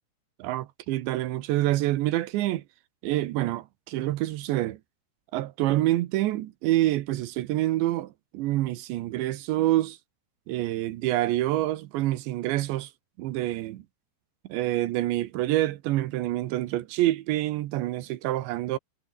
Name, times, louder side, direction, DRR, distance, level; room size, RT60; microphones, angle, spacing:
voice 1, 0.4-2.6 3.0-4.8 5.3-10.0 10.5-12.9 13.2-13.8 14.5-18.8, right 15 dB, 80° right, 3.3 m, -27 dB
omnidirectional pair, 5.2 m